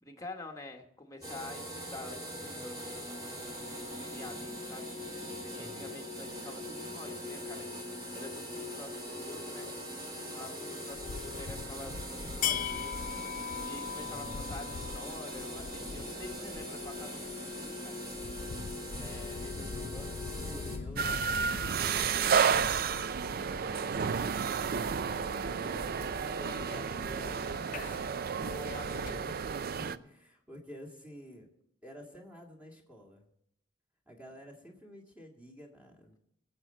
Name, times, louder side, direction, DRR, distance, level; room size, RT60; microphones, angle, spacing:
voice 1, 0.0-4.9 5.4-9.7 10.3-13.3 13.7-18.0 19.0-20.3 26.4-26.9 28.3-29.2, left 2 dB, 20° left, 3 dB, 1.2 m, -48 dB
sound 1, 1.2-20.8, equal, 20° right, 2.0 m, -41 dB
voice 2, 5.6-6.0 14.0-14.5 20.4-26.1 26.3-28.4 28.9-31.5 31.8-33.3 34.1-36.2, equal, 5° right, -1 dB, 1.9 m, -50 dB
sound 2, 10.9-29.3, left 7 dB, 45° left, 0.4 m, -42 dB
sound 3, 21.0-30.0, right 6 dB, 50° right, 0.4 m, -31 dB
22.5 x 7.7 x 4.3 m, 0.77 s
head